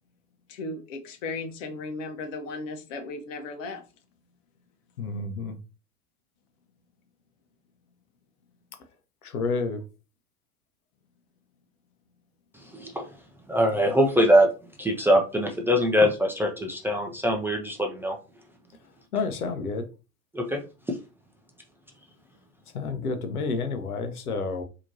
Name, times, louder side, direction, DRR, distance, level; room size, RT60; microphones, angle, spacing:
voice 1, 0.5-3.8, left 3 dB, 60° left, 7 dB, 1.1 m, -36 dB
voice 2, 5.0-5.6 9.2-9.8 19.1-19.8 22.7-24.6, left 4 dB, 80° left, 8 dB, 0.8 m, -29 dB
voice 3, 12.5-13.1 13.5-14.5 14.8-18.2 20.3-20.6 20.9-21.0, equal, 5° right, 1 dB, 0.5 m, -23 dB
4.3 x 2.9 x 2.7 m, 0.32 s
figure-of-eight pair, 85°, 44 cm